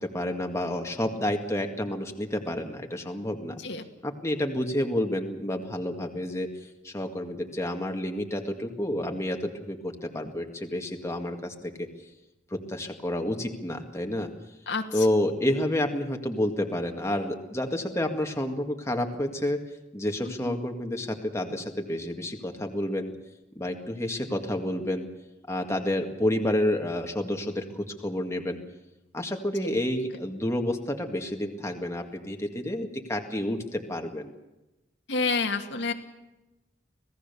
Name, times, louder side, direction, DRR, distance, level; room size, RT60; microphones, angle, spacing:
voice 1, 0.0-3.6 4.0-6.5 6.8-11.9 12.5-14.3 14.9-19.6 19.9-23.1 23.6-25.1 25.5-28.6 29.1-34.3, left 1 dB, 15° left, 3 dB, 2.0 m, -29 dB
voice 2, 14.7-15.1 20.2-20.6 29.6-29.8 35.1-35.9, left 4 dB, 75° left, 4 dB, 2.3 m, -29 dB
26.0 x 17.5 x 7.0 m, 1.0 s
head